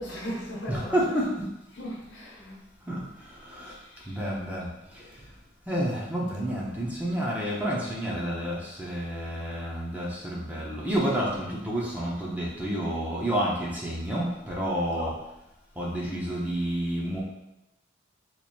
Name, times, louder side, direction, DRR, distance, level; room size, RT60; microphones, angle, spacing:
voice 1, 0.0-1.2 1.7-2.6 4.0-4.2 15.0-15.1, equal, 75° left, -3 dB, 0.9 m, -37 dB
voice 2, 0.7-1.4 2.9-3.0 3.6-3.7 4.1-4.7 5.7-15.1 15.8-17.2, equal, 10° right, -5 dB, 0.5 m, -29 dB
3.0 x 2.5 x 4.0 m, 0.90 s
head